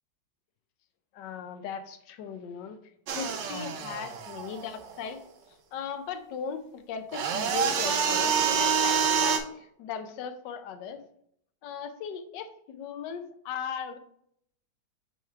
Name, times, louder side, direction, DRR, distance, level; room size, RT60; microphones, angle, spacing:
voice 1, 1.1-2.8 3.1-5.2 5.7-11.0 11.6-14.0, left 7 dB, 70° left, 8 dB, 1.3 m, -38 dB
sound 1, 3.1-5.1 7.1-9.4, right 7 dB, 70° right, 1.4 m, -27 dB
6.2 x 3.5 x 4.4 m, 0.69 s
omnidirectional pair, 2.1 m